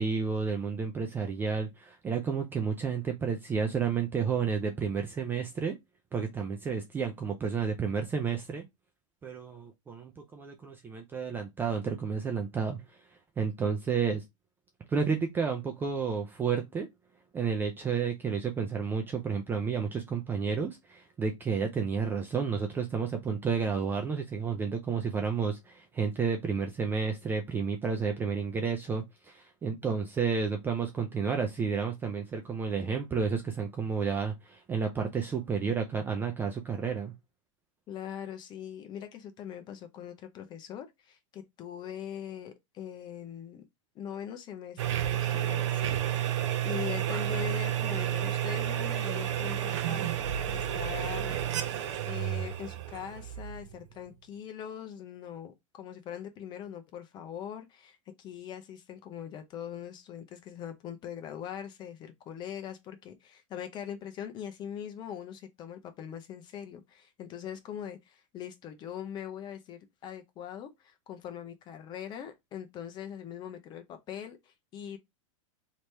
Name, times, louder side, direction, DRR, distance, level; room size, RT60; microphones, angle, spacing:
voice 1, 0.0-5.8 6.1-8.6 9.2-12.8 13.4-14.2 14.9-16.9 17.3-37.1, right 5 dB, 10° right, 0.4 m, -31 dB
voice 2, 37.9-43.6 43.9-46.0 46.2-51.4 52.1-75.0, left 9 dB, 25° left, 0.7 m, -42 dB
sound 1, 44.8-53.9, right 11 dB, 60° right, 0.7 m, -31 dB
3.0 x 2.8 x 3.3 m
hypercardioid pair, 140°, 17 cm